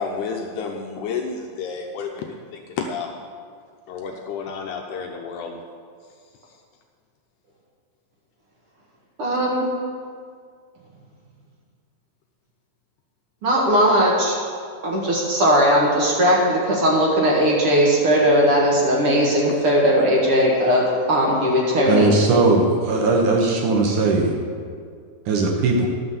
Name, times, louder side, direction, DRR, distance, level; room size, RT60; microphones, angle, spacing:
voice 1, 0.0-3.1 3.9-5.6, left 5 dB, 75° left, 2 dB, 1.9 m, -30 dB
voice 2, 9.2-9.6 13.4-14.4 14.8-22.1, equal, 50° right, -3 dB, 2.0 m, -18 dB
voice 3, 21.9-24.3 25.3-25.9, right 3 dB, 70° right, 0 dB, 2.6 m, -18 dB
12.5 x 6.1 x 7.0 m, 2.1 s
omnidirectional pair, 4.0 m